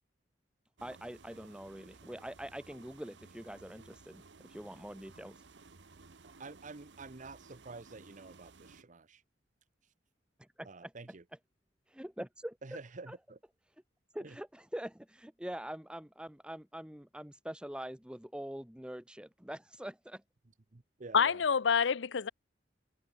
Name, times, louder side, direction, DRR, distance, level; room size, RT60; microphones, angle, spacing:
voice 1, 0.8-5.4 10.4-10.9 11.9-12.6 13.1-13.2 14.1-20.2, equal, 5° right, 1.4 m, -44 dB
sound 1, 0.8-8.8, right 3 dB, 70° right, 1.2 m, -57 dB
voice 2, 6.2-9.2 9.8-9.9 10.6-11.2 12.6-13.4 14.2-14.4 20.7-21.4, right 3 dB, 45° right, 0.8 m, -49 dB
voice 3, 21.1-22.3, left 6 dB, 75° left, 0.6 m, -27 dB
head